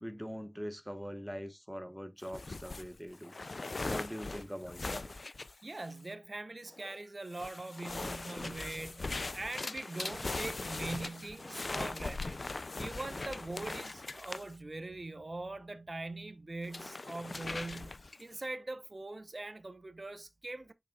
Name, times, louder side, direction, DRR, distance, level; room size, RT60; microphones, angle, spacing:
voice 1, 0.0-3.3 3.9-5.1, equal, ahead, 1.2 m, -42 dB
sound 1, 2.2-6.1 6.7-7.0 7.3-14.5 16.6-18.3, left 3 dB, 55° left, 0.4 m, -40 dB
voice 2, 5.6-20.7, right 2 dB, 45° right, 0.9 m, -42 dB
6.7 x 6.2 x 2.4 m
wide cardioid pair, 60°, 0 cm